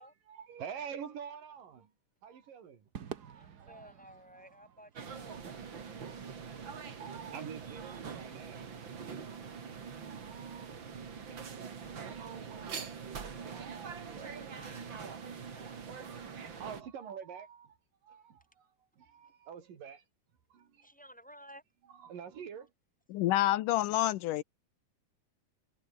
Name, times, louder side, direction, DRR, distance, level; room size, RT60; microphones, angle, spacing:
voice 1, 0.0-1.9 2.2-3.9 5.9-9.6 10.0-14.6 15.5-15.9 16.2-17.8 18.0-20.1 20.5-21.1 21.8-22.7, right 7 dB, 80° right, 4.5 m, -48 dB
Crowd / Fireworks, 2.9-7.4, right 8 dB, 55° right, 1.1 m, -51 dB
voice 2, 3.3-5.4 14.1-15.8 16.5-16.6 20.8-21.6, equal, ahead, 5.1 m, -55 dB
sound 1, 5.0-16.8, right 6 dB, 40° right, 2.7 m, -44 dB
voice 3, 23.1-24.4, left 15 dB, 80° left, 2.4 m, -28 dB
omnidirectional pair, 3.8 m